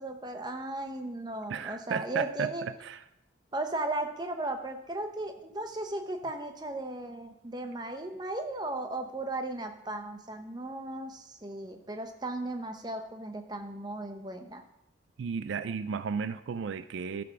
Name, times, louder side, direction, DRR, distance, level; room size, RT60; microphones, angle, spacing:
voice 1, 0.0-2.7 3.5-14.6, right 2 dB, 20° right, 5 dB, 0.8 m, -36 dB
voice 2, 1.5-3.0 15.2-17.2, right 6 dB, 75° right, 13 dB, 0.4 m, -34 dB
11.5 x 6.2 x 4.7 m, 0.81 s
head